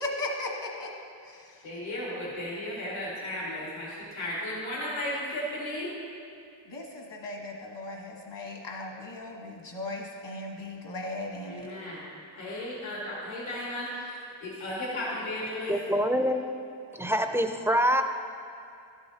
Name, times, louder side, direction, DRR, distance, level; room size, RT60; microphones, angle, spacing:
voice 1, 0.0-0.9 1.2-1.4 6.7-11.7, left 2 dB, 65° left, 0 dB, 1.4 m, -37 dB
voice 2, 1.6-5.9 11.4-12.0 12.4-15.7, left 1 dB, 90° left, -6 dB, 1.9 m, -35 dB
voice 3, 15.7-16.4 17.0-18.0, equal, 5° right, 6 dB, 0.3 m, -25 dB
12.0 x 7.9 x 2.8 m, 2.5 s
wide cardioid pair, 95°, 46 cm